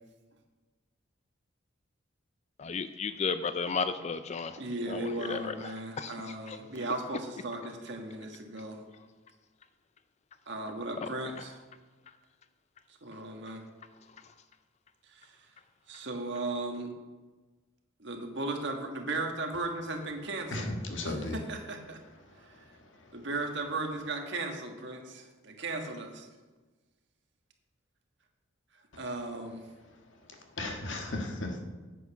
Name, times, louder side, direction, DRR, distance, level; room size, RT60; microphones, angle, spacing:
voice 1, 2.6-4.6 4.9-6.6 11.0-11.4 14.1-14.3, left 5 dB, 35° left, 11 dB, 0.4 m, -35 dB
voice 2, 4.6-8.8 10.5-11.6 12.9-13.6 15.0-15.5 15.9-16.9 18.0-20.7 21.0-22.0 22.4-22.7 23.1-26.3 29.0-29.6, right 2 dB, 65° right, 3 dB, 1.6 m, -36 dB
voice 3, 20.5-21.4 22.2-23.3 30.1-31.6, left 2 dB, 75° left, 3 dB, 1.6 m, -37 dB
8.9 x 8.4 x 6.0 m, 1.3 s
head